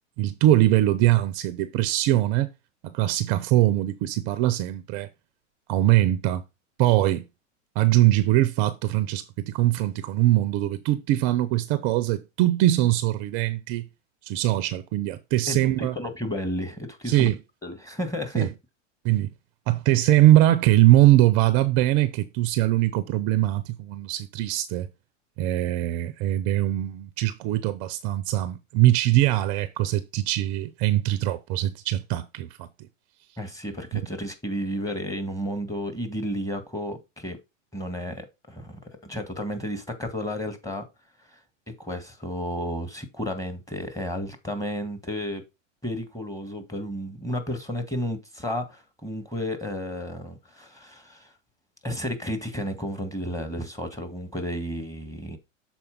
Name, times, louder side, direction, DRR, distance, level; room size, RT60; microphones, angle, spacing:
voice 1, 0.2-2.5 2.8-5.1 5.7-6.4 6.8-7.2 7.8-13.8 14.2-15.9 17.1-17.4 18.4-18.5 19.0-19.3 19.7-24.9 25.4-32.7 33.9-34.0, right 15 dB, 40° right, 0.6 m, -22 dB
voice 2, 15.5-17.3 17.6-18.5 33.4-37.4 37.7-40.8 41.3-41.4 41.8-45.4 45.8-51.3 51.8-55.4, equal, 10° left, 1.8 m, -32 dB
6.9 x 4.4 x 5.1 m
hypercardioid pair, 105°, 38 cm